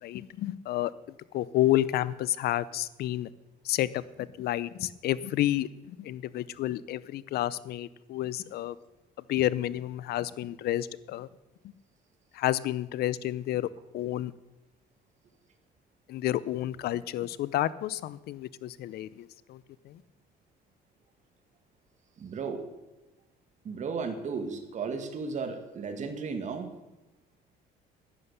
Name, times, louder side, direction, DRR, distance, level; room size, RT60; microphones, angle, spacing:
voice 1, 0.0-0.9 1.3-3.3 3.6-8.8 9.3-11.3 12.3-13.7 13.9-14.3 16.1-20.0, left 14 dB, 70° left, 18 dB, 0.6 m, -30 dB
voice 2, 22.2-22.6 23.6-26.7, right 5 dB, 45° right, 6 dB, 2.0 m, -34 dB
11.0 x 9.7 x 6.8 m, 1.0 s
cardioid pair, 110°, 17 cm